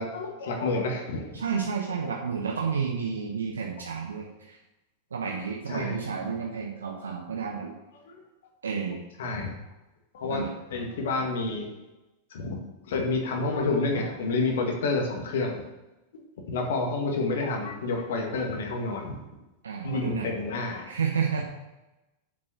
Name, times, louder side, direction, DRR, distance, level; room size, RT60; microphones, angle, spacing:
voice 1, 0.0-1.4 5.2-5.4 5.7-6.0 6.5-6.6 7.9-8.2 9.2-9.5 10.1-11.7 12.3-12.6 12.9-15.6 16.5-19.2 19.8-20.9, left 3 dB, 60° left, 2 dB, 1.9 m, -29 dB
voice 2, 1.3-4.3 5.1-7.7 8.6-9.0 10.3-10.5 19.6-20.3 20.9-21.4, right 6 dB, 70° right, 0 dB, 1.1 m, -30 dB
7.4 x 6.7 x 6.1 m, 1.0 s
figure-of-eight pair, 90°, 0 cm